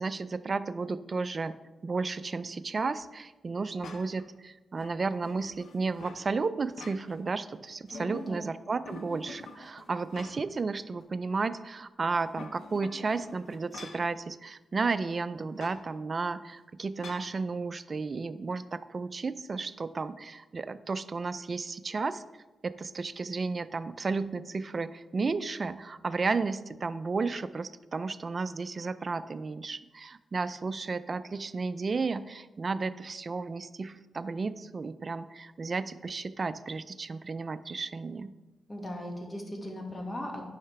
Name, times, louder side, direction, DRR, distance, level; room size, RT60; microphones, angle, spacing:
voice 1, 0.0-1.6 1.8-22.2 22.6-38.3, right 4 dB, 45° right, 14 dB, 0.4 m, -33 dB
sound 1, 3.8-4.3 4.8-6.3 6.6-7.4 7.7-8.5 8.9-10.6 11.0-11.1 12.1-14.1 15.6-15.8 17.0-17.3, left 4 dB, 80° left, 0.8 m, -47 dB
voice 2, 7.9-8.4 38.7-40.4, left 1 dB, 30° left, 0 dB, 1.9 m, -38 dB
9.7 x 5.6 x 3.4 m, 1.1 s
cardioid pair, 65°, 0 cm